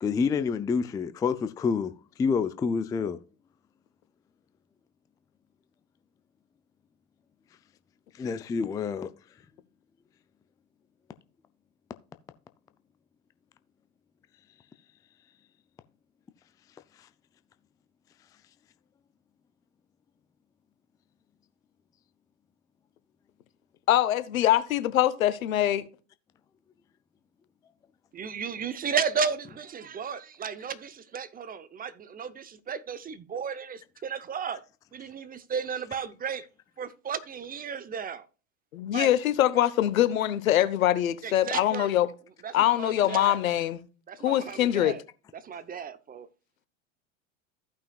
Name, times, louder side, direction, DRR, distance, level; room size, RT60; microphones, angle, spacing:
voice 1, 0.0-1.9 2.2-3.2 8.2-9.1, left 5 dB, 10° left, 0.3 m, -27 dB
voice 2, 23.9-25.8 38.7-42.1 42.5-43.8 44.2-44.9, left 12 dB, 90° left, 1.0 m, -23 dB
voice 3, 28.1-34.6 34.9-36.4 36.8-38.3 38.9-39.1 41.2-41.9 42.4-43.4 44.1-45.0 45.3-46.3, right 6 dB, 20° right, 0.7 m, -34 dB
15.0 x 5.7 x 2.3 m
hypercardioid pair, 105°, 40 cm